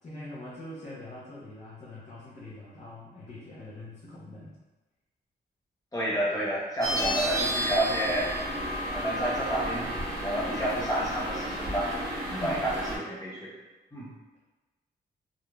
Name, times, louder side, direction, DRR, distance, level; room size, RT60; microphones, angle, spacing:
voice 1, 0.0-4.5 12.3-12.7, left 2 dB, 40° left, -8 dB, 0.6 m, -43 dB
voice 2, 5.9-8.3 8.9-9.9 10.2-11.9 12.4-13.5 13.9-14.1, right 1 dB, 20° left, -8 dB, 1.1 m, -30 dB
sound 1, 6.8-13.0, equal, 20° right, 0.8 m, -32 dB
2.5 x 2.1 x 3.1 m, 1.1 s
cardioid pair, 115°, 18 cm